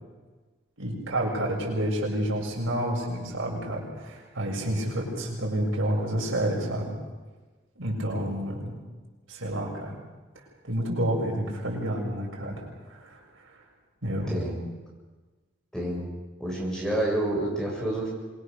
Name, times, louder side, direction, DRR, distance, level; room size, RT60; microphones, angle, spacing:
voice 1, 0.8-6.9 7.8-8.7 9.3-10.0 10.6-13.2 14.0-14.3, right 1 dB, 90° right, -2 dB, 7.1 m, -29 dB
voice 2, 14.3-14.6 15.7-16.0 16.4-18.1, right 1 dB, 5° left, -3 dB, 7.2 m, -28 dB
26.0 x 22.5 x 6.8 m, 1.3 s
head